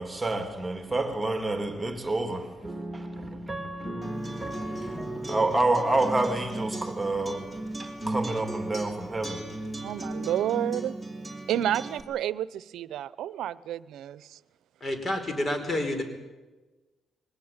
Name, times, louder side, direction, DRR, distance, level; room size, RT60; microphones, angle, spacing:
voice 1, 0.0-9.5, right 2 dB, 15° right, 2.8 m, -29 dB
Acoustic guitar, 4.0-12.0, right 1 dB, 5° left, 4.5 m, -36 dB
voice 2, 9.8-11.0 11.5-14.4, right 11 dB, 80° right, 0.8 m, -30 dB
voice 3, 14.8-16.0, left 1 dB, 35° left, 5.2 m, -29 dB
23.0 x 19.0 x 8.9 m
cardioid pair, 90°, 0 cm